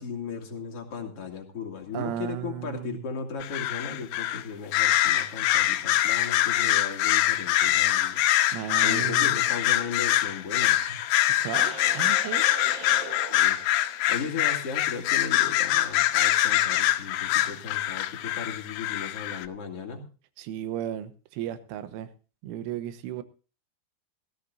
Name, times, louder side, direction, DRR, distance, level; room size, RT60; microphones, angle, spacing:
voice 1, 0.0-8.2 8.8-11.0 13.3-13.6 14.1-20.1, left 5 dB, 40° left, 1 dB, 2.5 m, -36 dB
voice 2, 1.9-3.0 8.5-9.5 11.2-12.5 20.4-22.1 22.4-23.2, right 11 dB, 80° right, 12 dB, 3.6 m, -35 dB
sound 1, 3.4-4.4 4.7-19.5, left 14 dB, 85° left, 3.3 m, -24 dB
sound 2, 11.5-14.2, right 3 dB, 60° right, 1.1 m, -41 dB
17.5 x 15.5 x 2.6 m, 0.35 s
omnidirectional pair, 5.6 m